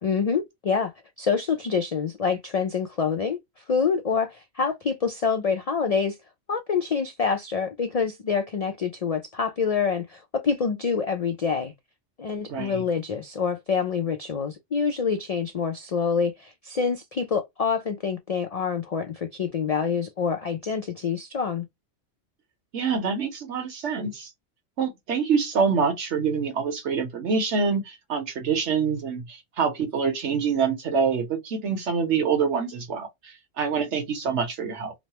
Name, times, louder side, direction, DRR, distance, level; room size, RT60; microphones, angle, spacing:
voice 1, 0.0-0.9 1.2-6.2 6.5-11.7 12.2-21.7, left 6 dB, 75° left, 0.3 m, -26 dB
voice 2, 12.5-12.8 22.7-24.3 24.8-34.9, right 6 dB, 70° right, 1.2 m, -26 dB
3.1 x 2.0 x 2.9 m
omnidirectional pair, 1.2 m